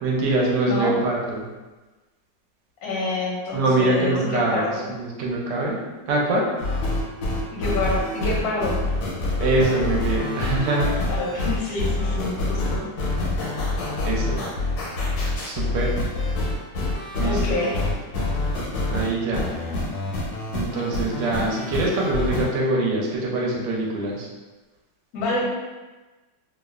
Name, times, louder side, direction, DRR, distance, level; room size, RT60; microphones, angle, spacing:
voice 1, 0.0-1.4 3.5-5.8 6.1-6.5 9.4-11.0 11.3-11.4 14.0-14.4 15.4-15.9 17.2-17.6 18.9-19.5 20.5-24.3, right 2 dB, 80° right, -3 dB, 1.2 m, -24 dB
voice 2, 0.7-1.0 2.8-4.8 7.5-8.8 11.1-12.9 17.2-17.9 19.7-19.9 25.1-25.5, left 2 dB, 70° left, -3 dB, 0.9 m, -27 dB
sound 1, 6.6-22.5, left 2 dB, 90° left, 1.3 m, -26 dB
3.0 x 2.0 x 2.3 m, 1.2 s
omnidirectional pair, 2.0 m